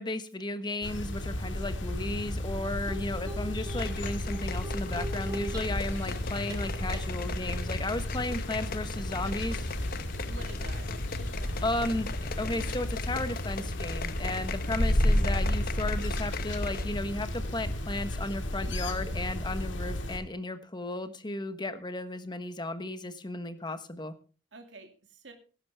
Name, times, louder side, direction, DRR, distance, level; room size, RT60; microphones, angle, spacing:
voice 1, 0.0-9.7 11.6-12.1 12.4-24.1, left 2 dB, 25° left, 10 dB, 1.2 m, -34 dB
sound 1, 0.8-20.2, left 1 dB, 85° left, 2.2 m, -32 dB
sound 2, 1.6-1.8 2.1-2.2 2.9-5.9 6.5-7.0, right 2 dB, 20° right, 1.6 m, -43 dB
sound 3, 3.7-17.0 17.3-17.4, left 6 dB, 55° left, 1.0 m, -41 dB
voice 2, 10.2-11.7 24.5-25.3, right 2 dB, 75° right, 4 dB, 2.5 m, -49 dB
17.5 x 11.5 x 3.5 m, 0.35 s
head